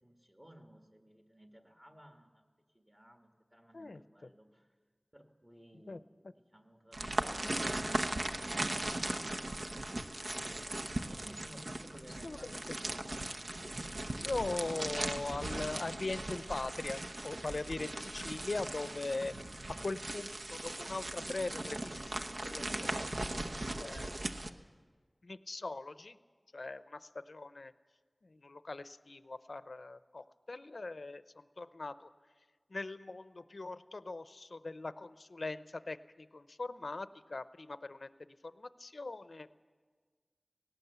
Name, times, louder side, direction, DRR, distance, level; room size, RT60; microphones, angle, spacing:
voice 1, 0.0-2.4 2.7-4.7 5.1-9.4 11.1-12.9, equal, 25° right, 4 dB, 1.7 m, -58 dB
sound 1, 6.9-24.5, right 1 dB, 75° right, 0.9 m, -38 dB
voice 2, 12.2-12.6 14.2-19.3 19.8-22.7 23.0-23.2 23.8-24.2 25.2-26.2 26.5-27.7 28.3-31.2 31.6-32.1 32.7-38.1 38.4-39.7, left 3 dB, 90° left, 13 dB, 0.6 m, -41 dB
18.5 x 18.0 x 8.0 m, 1.5 s
wide cardioid pair, 55°, 0 cm